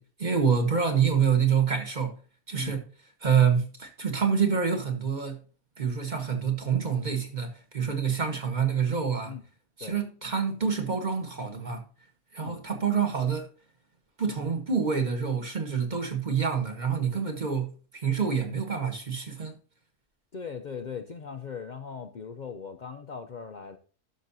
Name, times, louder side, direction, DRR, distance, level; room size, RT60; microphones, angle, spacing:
voice 1, 0.0-2.1 2.5-2.8 3.2-5.4 5.8-9.3 9.8-11.8 12.3-13.5 14.2-17.7 18.0-19.5, right 6 dB, 30° right, 1.3 m, -27 dB
voice 2, 20.3-23.8, left 6 dB, 90° left, 0.4 m, -39 dB
12.0 x 6.4 x 2.7 m
omnidirectional pair, 1.7 m